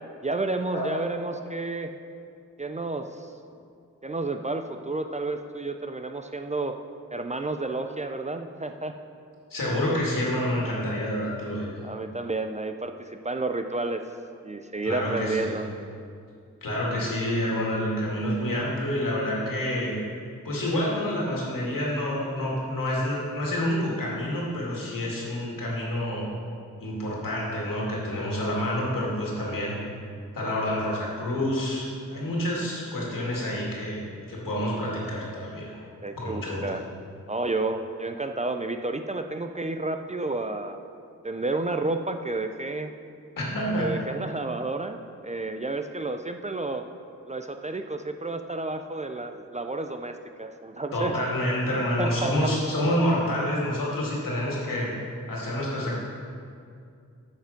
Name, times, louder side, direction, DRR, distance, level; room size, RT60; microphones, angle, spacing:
voice 1, 0.2-1.9 2.6-3.3 4.0-6.8 7.1-8.9 11.8-14.0 14.4-15.7 36.0-36.8 37.3-40.8 41.2-42.9 43.8-45.0 45.2-46.8 47.3-51.1 52.0-52.3, right 2 dB, 20° right, 6 dB, 0.4 m, -31 dB
voice 2, 9.5-11.7 14.8-15.6 16.6-20.0 20.4-26.3 26.8-29.8 30.3-35.8 36.1-36.7 43.4-43.9 50.9-54.9 55.3-56.0, left 1 dB, 80° left, -4 dB, 2.2 m, -28 dB
8.9 x 5.8 x 5.1 m, 2.4 s
wide cardioid pair, 75°, 33 cm